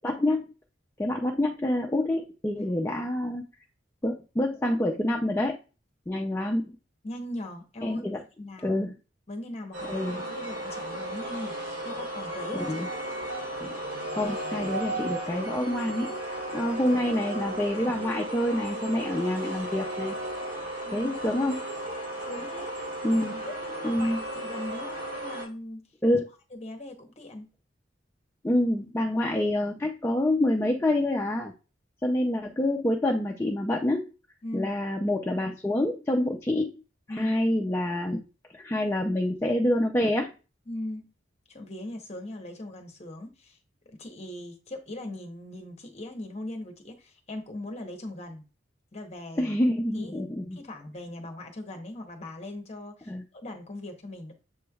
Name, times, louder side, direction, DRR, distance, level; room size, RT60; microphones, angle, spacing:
voice 1, 0.0-0.4 1.0-3.5 4.0-5.6 6.1-6.8 7.8-8.2 8.6-8.9 9.9-10.2 12.7-12.9 13.6-13.8 14.2-20.1 20.9-21.7 23.0-23.5 23.8-24.2 26.0-26.3 28.4-31.5 32.0-34.1 34.5-36.8 37.1-38.2 38.5-40.3 49.4-50.6 53.1-53.2, left 1 dB, 10° left, 0 dB, 0.4 m, -27 dB
voice 2, 7.0-8.0 8.4-8.8 9.3-12.8 20.8-21.4 22.3-22.7 23.4-25.8 26.5-27.5 34.4-34.7 37.1-37.3 40.7-41.1 41.5-43.6 43.9-48.4 48.9-49.6 49.9-50.2 50.5-54.3, left 1 dB, 35° left, 5 dB, 0.9 m, -40 dB
sound 1, 9.7-25.5, right 1 dB, 80° right, 2.0 m, -35 dB
6.9 x 3.1 x 2.3 m, 0.32 s
head